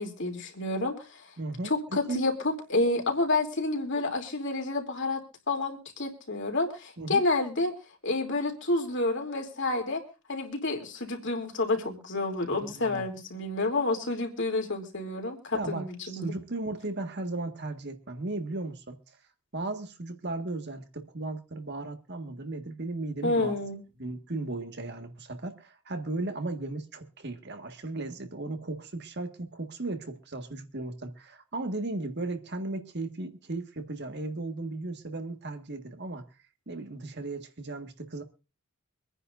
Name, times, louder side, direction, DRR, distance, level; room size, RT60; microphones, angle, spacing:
voice 1, 0.0-1.3 1.6-5.2 5.5-7.7 8.0-10.0 10.3-16.3 23.2-23.8, left 2 dB, 55° left, 3.0 m, -29 dB
voice 2, 1.4-2.2 7.0-7.2 12.5-13.0 15.5-19.0 19.5-23.6 24.0-36.2 36.7-38.2, right 2 dB, 50° right, 1.7 m, -36 dB
25.0 x 9.9 x 2.6 m
head